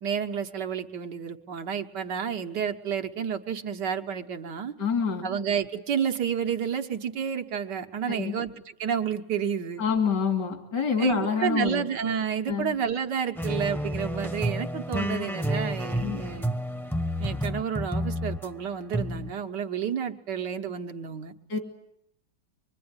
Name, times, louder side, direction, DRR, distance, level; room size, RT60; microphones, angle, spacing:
voice 1, 0.0-4.7 5.2-9.8 11.0-16.5 17.2-21.3, right 7 dB, 75° right, 5 dB, 1.9 m, -30 dB
voice 2, 4.8-5.3 8.1-8.4 9.8-11.9 12.5-12.8 16.0-16.2 21.5-21.6, left 6 dB, 75° left, 5 dB, 3.4 m, -27 dB
sound 1, 13.4-18.5 18.9-19.3, equal, ahead, 0.8 m, -30 dB
25.0 x 22.5 x 9.7 m, 0.77 s
omnidirectional pair, 1.9 m